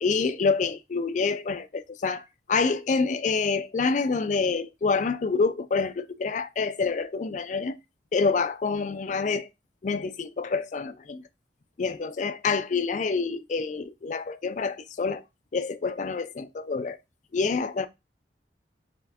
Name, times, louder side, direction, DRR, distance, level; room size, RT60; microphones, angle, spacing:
voice 1, 0.0-7.8 8.1-9.5 9.8-11.2 11.8-15.2 15.5-17.0 17.3-17.9, left 4 dB, 45° left, 0.4 m, -27 dB
4.2 x 3.2 x 2.8 m
head